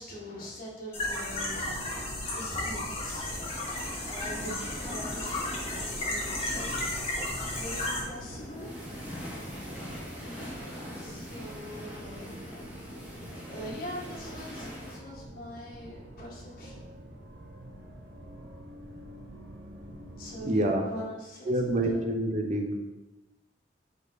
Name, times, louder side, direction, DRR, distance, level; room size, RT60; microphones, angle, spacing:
voice 1, 0.0-1.8 2.3-3.4 4.0-6.9 7.5-9.1 10.9-12.4 13.4-16.9 20.2-22.0, equal, 50° left, -4 dB, 1.6 m, -43 dB
sound 1, 0.9-8.0, left 2 dB, 35° left, 1.4 m, -34 dB
sound 2, 1.3-20.5, equal, 85° right, 0.9 m, -47 dB
sound 3, 3.0-15.0, equal, 10° right, 1.5 m, -43 dB
voice 2, 20.4-20.8 21.5-22.7, right 1 dB, 40° right, 3 dB, 0.7 m, -27 dB
5.2 x 4.6 x 4.0 m, 1.1 s
head